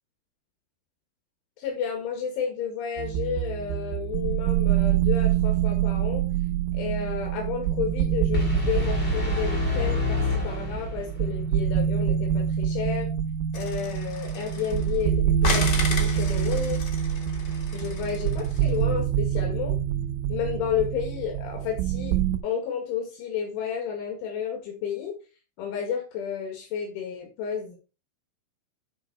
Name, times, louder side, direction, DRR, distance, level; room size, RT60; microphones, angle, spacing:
voice 1, 1.6-6.3 6.7-13.1 13.5-16.8 17.7-19.8 20.3-22.2 22.4-25.2 25.6-27.8, left 8 dB, 75° left, 2 dB, 4.3 m, -31 dB
sound 1, 3.0-22.4, right 10 dB, 85° right, 3.2 m, -26 dB
sound 2, 8.3-11.3, left 6 dB, 30° left, 1.0 m, -28 dB
sound 3, 13.5-15.0 15.4-18.7, left 5 dB, 50° left, 1.4 m, -33 dB
10.5 x 4.9 x 4.7 m, 0.32 s
omnidirectional pair, 5.7 m